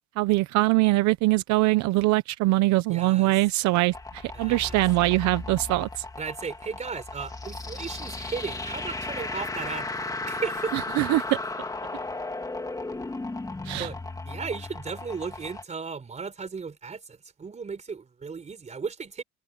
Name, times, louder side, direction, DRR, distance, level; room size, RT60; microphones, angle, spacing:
voice 1, 0.2-6.0 10.7-11.4 13.6-13.9, right 19 dB, 75° right, 0.9 m, -23 dB
voice 2, 2.9-3.3 4.3-4.8 6.2-11.0 13.8-14.0 14.3-19.2, right 5 dB, 25° right, 4.1 m, -35 dB
sound 1, 3.9-15.6, left 2 dB, 10° left, 2.0 m, -35 dB
cardioid pair, 130°, 29 cm